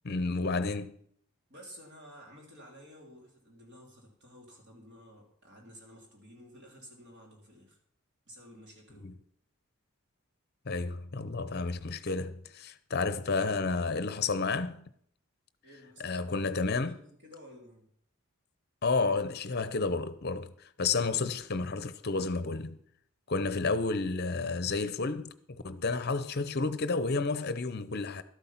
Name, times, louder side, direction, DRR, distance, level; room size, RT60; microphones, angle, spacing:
voice 1, 0.0-1.0 9.0-9.1 10.7-14.9 16.0-17.0 18.8-22.8 23.3-28.2, left 3 dB, 45° left, 0.7 m, -31 dB
voice 2, 1.5-7.8 8.3-9.2 15.6-17.9, equal, 50° right, 3.1 m, -53 dB
12.5 x 8.4 x 5.8 m
head